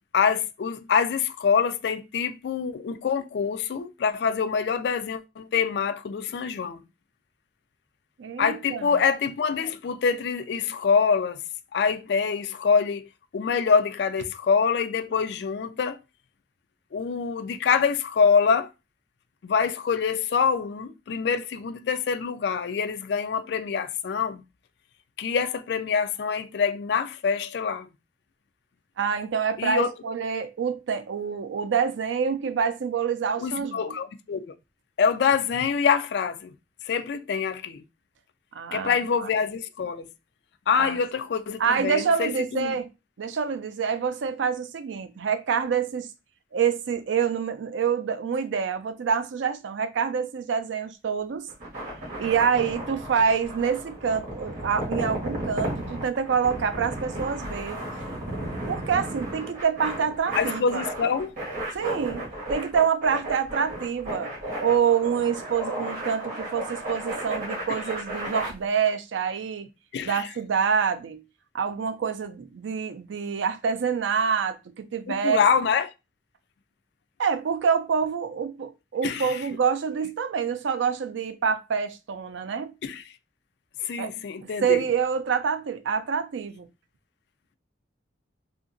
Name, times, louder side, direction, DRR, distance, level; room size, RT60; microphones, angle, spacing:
voice 1, 0.1-6.8 8.4-11.4 11.7-13.1 13.3-16.0 16.9-18.7 19.4-24.4 25.2-27.9 29.6-29.9 33.4-34.5 35.0-36.5 36.8-37.8 38.7-40.1 40.7-42.7 60.4-61.3 67.7-67.8 69.9-70.3 75.1-75.9 79.0-79.4 82.8-83.0 83.8-84.8, left 6 dB, 60° left, 0.3 m, -25 dB
voice 2, 8.2-8.9 29.0-34.0 38.5-39.0 39.2-39.3 40.8-41.0 41.6-42.9 43.2-46.1 46.5-51.5 52.2-57.8 58.7-60.8 61.7-64.3 64.6-69.7 70.0-71.2 71.5-75.4 77.2-82.7 84.0-84.1 84.4-86.7, right 6 dB, 75° right, 0.4 m, -26 dB
sound 1, 51.5-68.5, right 1 dB, 45° right, 1.2 m, -34 dB
2.7 x 2.4 x 2.5 m
head